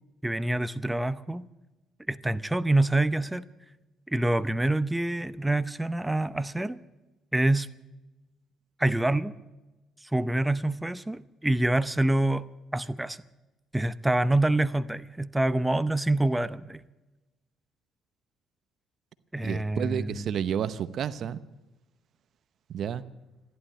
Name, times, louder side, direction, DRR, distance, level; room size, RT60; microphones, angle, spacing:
voice 1, 0.2-1.5 2.1-3.4 4.1-6.8 7.3-7.7 8.8-9.3 10.0-12.5 12.7-13.2 13.7-16.8 19.3-20.2, right 1 dB, 10° right, 14 dB, 0.7 m, -26 dB
voice 2, 19.4-21.4 22.7-23.0, right 8 dB, 60° right, 15 dB, 0.8 m, -30 dB
14.5 x 11.5 x 8.7 m, 1.1 s
supercardioid pair, 75°, 0 cm